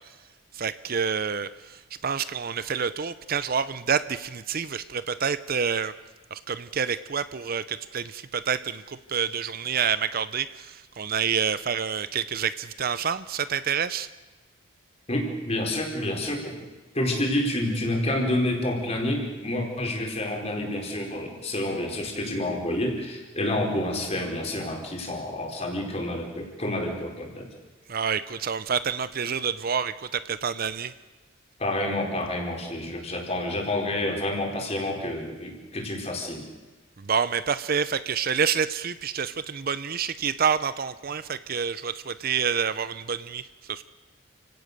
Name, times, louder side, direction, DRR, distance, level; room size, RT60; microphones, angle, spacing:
voice 1, 0.5-1.5 2.0-5.9 6.3-14.1 27.9-30.9 37.0-43.4 43.7-43.8, right 6 dB, 45° right, 14 dB, 0.6 m, -28 dB
voice 2, 15.1-16.7 16.9-27.5 31.6-36.5, left 1 dB, 30° left, 1 dB, 4.5 m, -29 dB
29.0 x 17.5 x 6.8 m, 1.2 s
head